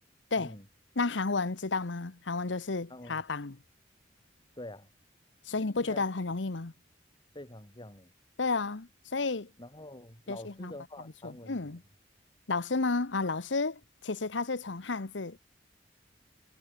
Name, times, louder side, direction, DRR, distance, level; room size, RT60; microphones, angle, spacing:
voice 1, 1.0-3.6 5.4-6.7 8.4-9.5 10.3-10.7 11.2-11.8 12.5-15.4, left 3 dB, 85° left, 1.1 m, -32 dB
voice 2, 2.9-3.2 4.6-4.9 5.5-6.0 7.3-8.1 9.6-11.8, left 1 dB, 25° left, 7.4 m, -46 dB
head